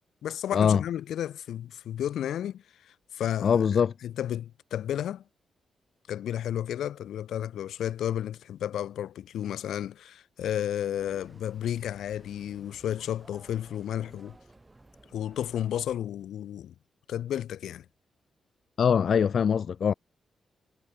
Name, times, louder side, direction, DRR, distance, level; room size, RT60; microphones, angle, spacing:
voice 1, 0.2-3.6 4.0-5.2 6.1-14.4 15.1-16.7 17.1-17.8 19.4-19.5, left 11 dB, 90° left, 2.0 m, -32 dB
voice 2, 3.4-3.9 18.8-19.9, left 7 dB, 50° left, 0.4 m, -22 dB
sound 1, 11.0-16.0, right 2 dB, 10° right, 6.1 m, -56 dB
wide cardioid pair, 160°, 0 cm